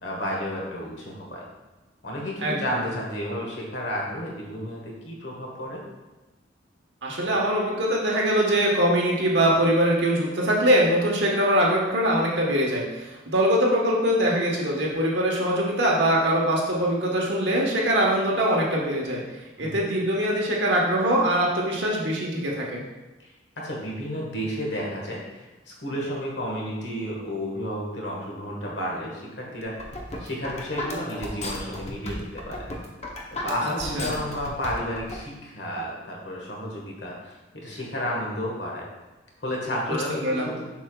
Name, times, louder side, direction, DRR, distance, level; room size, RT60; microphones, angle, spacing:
voice 1, 0.0-1.4 2.0-5.8 19.6-19.8 23.2-23.3 23.6-25.2 25.7-29.7 30.2-32.7 33.3-38.8 39.4-40.6, equal, 65° left, -2 dB, 1.5 m, -32 dB
voice 2, 7.0-19.2 19.6-22.8 33.6-33.7 33.9-34.2 40.2-40.5, right 1 dB, 65° right, -2 dB, 1.2 m, -22 dB
sound 1, 29.6-35.2, left 1 dB, 35° left, 0.8 m, -34 dB
7.3 x 5.6 x 2.3 m, 1.1 s
head